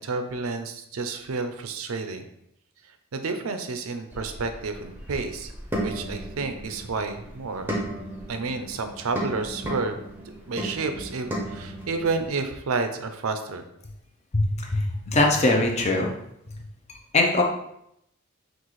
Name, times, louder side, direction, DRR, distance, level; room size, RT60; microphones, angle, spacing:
voice 1, 0.0-2.2 2.8-5.5 5.8-7.8 8.3-10.0 10.5-13.7, right 4 dB, 75° right, 7 dB, 0.5 m, -30 dB
sound 1, 4.1-12.3, right 1 dB, 10° right, 0.7 m, -35 dB
voice 2, 14.3-16.1 17.1-17.4, left 2 dB, 30° left, 1 dB, 0.6 m, -21 dB
6.0 x 2.4 x 3.1 m, 0.77 s
head